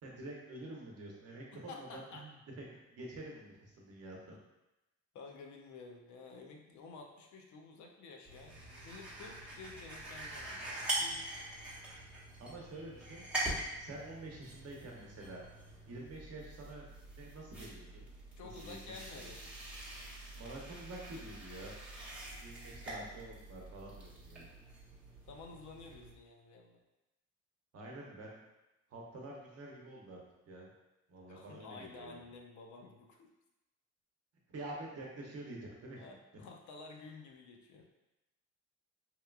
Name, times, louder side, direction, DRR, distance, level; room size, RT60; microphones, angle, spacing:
voice 1, 0.0-4.4 12.4-13.2 13.8-15.4 15.9-16.9 17.1-18.0 18.4-18.9 19.2-19.5 20.1-21.7 22.4-24.5 27.7-28.4 28.9-30.2 30.5-30.7 31.1-32.2 34.5-36.0, right 2 dB, 55° right, -2 dB, 0.8 m, -48 dB
voice 2, 1.5-2.2 5.1-11.2 18.4-19.4 19.7-20.2 25.3-26.8 31.3-33.3 36.0-37.8, left 4 dB, 70° left, 2 dB, 0.5 m, -52 dB
sound 1, 8.2-26.1, right 1 dB, 5° right, 0.8 m, -44 dB
2.9 x 2.2 x 2.3 m, 0.98 s
cardioid pair, 90°, 30 cm